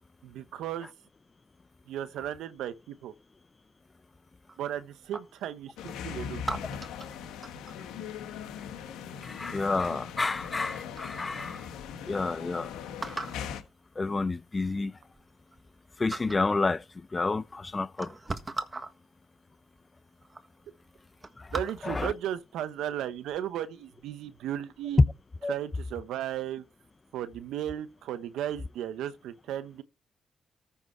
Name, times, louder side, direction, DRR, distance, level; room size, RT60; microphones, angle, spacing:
voice 1, 0.2-0.9 1.9-3.1 4.6-6.4 21.5-25.0 25.5-26.6 27.1-29.8, right 11 dB, 85° right, 0.9 m, -35 dB
sound 1, 4.5-5.5 6.4-7.9 9.5-9.9 10.6-10.7 10.9-11.5 12.0-12.1 12.3-12.4 13.0-13.5 14.5-14.6 15.0-15.8 16.1-16.5 17.4-17.5 17.9-18.9 19.8-19.9 20.2-20.5 20.8-22.1 22.6-22.8, right 3 dB, 30° right, 1.5 m, -39 dB
sound 2, 5.8-13.6, left 8 dB, 90° left, 1.4 m, -40 dB
voice 2, 9.2-11.7 12.1-12.7 14.0-14.9 16.0-18.1 21.4-21.5 21.8-22.1 25.4-25.5, left 3 dB, 30° left, 0.7 m, -30 dB
14.0 x 6.0 x 4.5 m
supercardioid pair, 55°, 0 cm